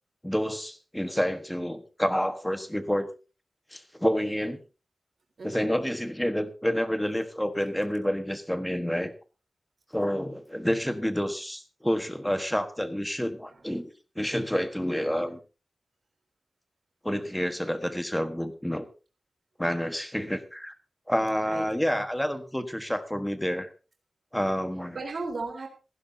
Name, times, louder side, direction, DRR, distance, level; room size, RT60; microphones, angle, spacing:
voice 1, 0.2-3.1 3.7-4.6 5.4-9.1 9.9-15.4 17.0-18.8 19.6-20.7 21.1-23.7 24.3-25.0, equal, 5° left, 9 dB, 1.4 m, -29 dB
voice 2, 5.4-5.8 13.5-13.7 21.5-22.0 24.9-25.7, right 3 dB, 55° right, 2 dB, 3.8 m, -36 dB
16.0 x 15.5 x 2.8 m, 0.33 s
wide cardioid pair, 150°, 0 cm